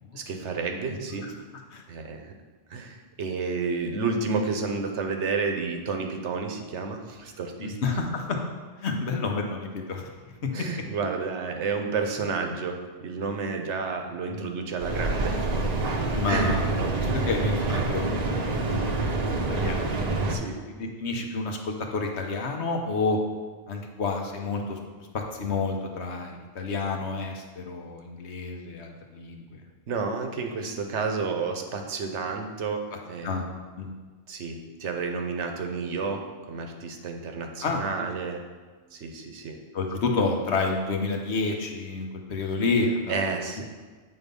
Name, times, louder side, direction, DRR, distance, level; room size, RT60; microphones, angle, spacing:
voice 1, 0.1-1.3 1.9-2.4 2.7-7.8 10.5-15.7 16.3-16.6 20.3-20.7 29.9-33.5 34.3-38.5 38.9-39.6 43.1-43.6, right 4 dB, 85° right, 4 dB, 1.1 m, -31 dB
voice 2, 7.6-8.4 8.8-10.1 10.4-10.5 14.3-14.5 16.1-16.6 17.0-18.2 18.7-18.8 19.1-20.0 20.7-23.2 23.7-24.8 25.1-29.6 33.2-33.5 33.8-33.9 37.6-37.8 39.7-43.1, left 3 dB, 70° left, 2 dB, 1.2 m, -29 dB
Mechanical fan, 14.8-20.4, right 2 dB, 40° right, 0.7 m, -27 dB
8.3 x 4.0 x 5.3 m, 1.4 s
omnidirectional pair, 1.2 m